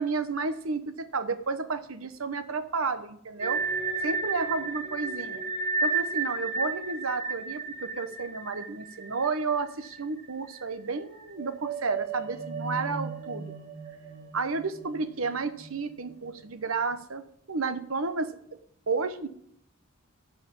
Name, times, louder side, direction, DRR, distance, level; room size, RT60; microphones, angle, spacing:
voice 1, 0.0-3.6 4.0-5.4 5.8-13.5 14.3-17.2 17.5-18.3 18.9-19.3, right 4 dB, 90° right, 11 dB, 1.0 m, -31 dB
sound 1, 3.4-10.3 10.5-10.7 11.2-16.5, right 4 dB, 35° right, 1.9 m, -33 dB
13.5 x 4.9 x 8.5 m, 0.66 s
head